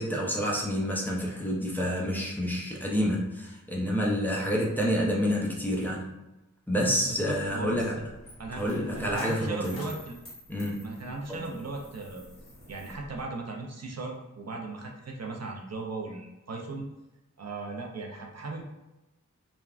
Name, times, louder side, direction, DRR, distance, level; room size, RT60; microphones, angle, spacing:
voice 1, 0.0-6.1 6.7-7.9 8.6-9.8 10.5-10.9 11.3-11.5, equal, 5° left, -4 dB, 0.6 m, -28 dB
voice 2, 7.0-7.9 8.4-8.6 8.9-10.2 10.8-12.3 12.7-16.9 17.4-18.6, right 3 dB, 55° right, 0 dB, 0.5 m, -37 dB
Coin (dropping), 7.5-13.2, left 1 dB, 45° left, 1.0 m, -48 dB
3.4 x 2.1 x 2.4 m, 0.99 s
wide cardioid pair, 70°, 31 cm